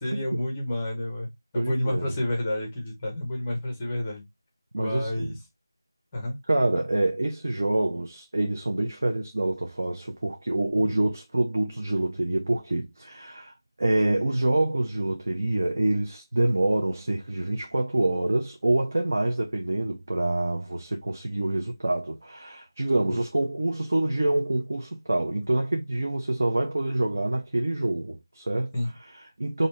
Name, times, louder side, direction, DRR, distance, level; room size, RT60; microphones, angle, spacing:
voice 1, 0.0-4.2 4.8-5.3 6.1-6.4 10.8-10.9 22.9-23.2 28.7-28.9, left 1 dB, 10° left, 0.7 m, -30 dB
voice 2, 1.5-2.1 4.7-5.3 6.5-13.5 13.8-28.8 29.1-29.7, right 2 dB, 40° right, 0.7 m, -26 dB
5.1 x 2.7 x 3.1 m
figure-of-eight pair, 180°, 2 cm